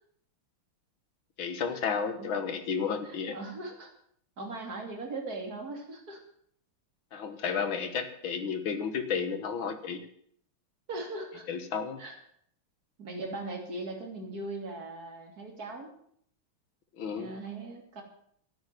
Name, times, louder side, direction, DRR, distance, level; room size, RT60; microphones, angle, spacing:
voice 1, 1.4-3.4 7.1-10.1 11.5-12.0 17.0-17.3, left 6 dB, 70° left, 10 dB, 2.1 m, -32 dB
voice 2, 3.0-3.9 4.4-6.2 10.9-11.5 12.0-12.2 13.0-15.9 17.1-18.0, right 2 dB, 45° right, 2 dB, 3.4 m, -39 dB
12.5 x 9.4 x 9.2 m, 0.66 s
omnidirectional pair, 2.3 m